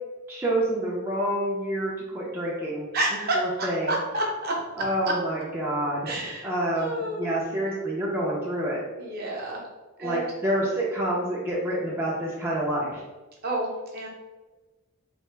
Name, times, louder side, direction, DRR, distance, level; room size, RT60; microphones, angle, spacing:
voice 1, 0.3-2.9 3.3-3.9 4.8-8.8 10.0-13.0, right 1 dB, 10° right, -6 dB, 0.4 m, -28 dB
voice 2, 2.9-4.5 6.1-6.5 6.8-7.3 9.0-9.6 10.0-10.3 13.4-14.1, right 1 dB, 45° right, -1 dB, 0.7 m, -29 dB
3.3 x 2.4 x 3.1 m, 1.2 s
head